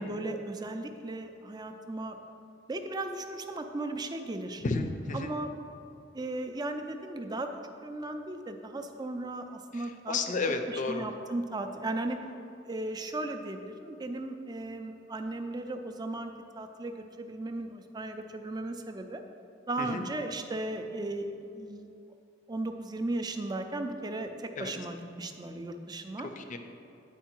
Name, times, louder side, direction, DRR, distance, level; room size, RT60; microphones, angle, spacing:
voice 1, 0.0-2.2 2.7-4.6 5.1-5.5 6.1-7.5 7.8-10.2 10.7-12.2 12.7-19.2 19.7-21.9 22.5-26.3, right 2 dB, 20° right, 6 dB, 0.4 m, -36 dB
voice 2, 4.6-5.3 9.8-11.1 19.8-20.0 24.6-24.7 26.2-26.6, left 3 dB, 40° left, 6 dB, 0.5 m, -32 dB
9.0 x 4.6 x 4.4 m, 2.7 s
head